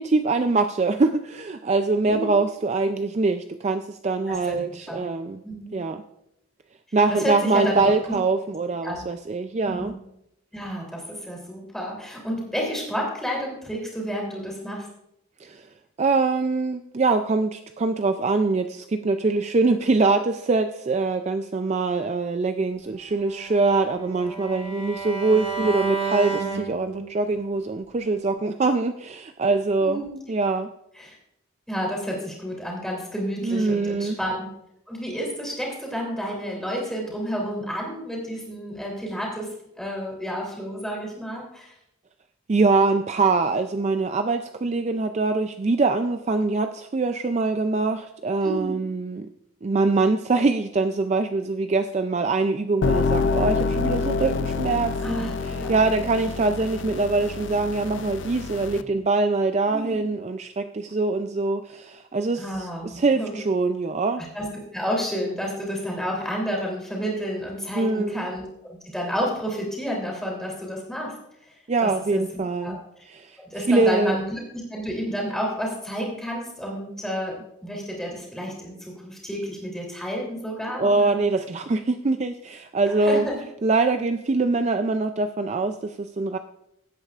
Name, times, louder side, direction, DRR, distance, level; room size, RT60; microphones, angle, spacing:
voice 1, 0.0-5.4 5.7-6.0 6.9-9.9 15.4-15.7 16.0-30.0 30.3-30.7 33.4-34.2 42.5-49.3 49.6-64.2 67.8-68.3 71.7-72.8 73.1-74.2 80.8-83.3 83.6-86.4, right 3 dB, 35° right, 8 dB, 0.4 m, -23 dB
voice 2, 4.3-4.6 4.9-5.0 5.4-5.7 6.9-8.1 8.8-9.0 9.6-10.0 10.5-14.9 29.8-30.2 30.9-31.1 31.7-34.5 34.9-39.5 39.8-41.7 48.4-48.8 55.0-55.8 56.2-56.3 59.7-60.0 62.4-63.4 64.3-64.5 64.7-68.4 68.9-71.1 71.5-71.6 71.8-73.0 73.4-77.4 77.6-81.2 82.9-83.4, equal, ahead, -2 dB, 3.1 m, -30 dB
Bowed string instrument, 23.1-27.3, right 4 dB, 70° right, 1.6 m, -31 dB
sound 1, 52.8-58.8, left 4 dB, 60° left, 0.5 m, -27 dB
16.5 x 8.8 x 2.4 m, 0.80 s
head